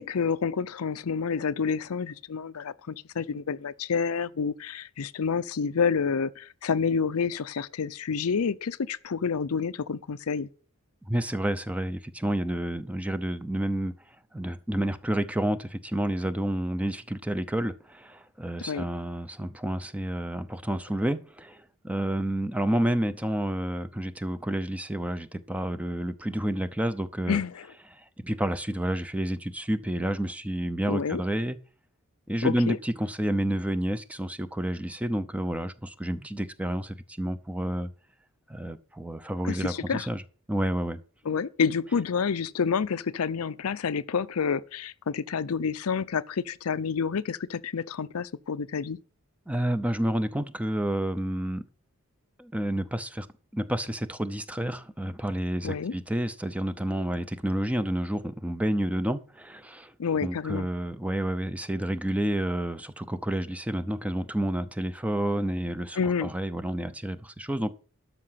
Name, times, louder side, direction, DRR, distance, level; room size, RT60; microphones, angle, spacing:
voice 1, 0.0-10.5 18.7-18.8 27.3-27.7 30.9-31.2 32.4-32.8 39.4-40.1 41.2-49.0 55.6-55.9 60.0-60.7 66.0-66.3, left 6 dB, 75° left, 0.5 m, -29 dB
voice 2, 11.1-13.9 14.3-27.4 27.9-31.6 32.3-37.9 38.5-40.2 40.5-41.0 49.5-51.6 52.4-53.3 53.5-59.9 60.2-67.7, right 1 dB, 5° right, 0.6 m, -29 dB
12.5 x 5.8 x 5.7 m
head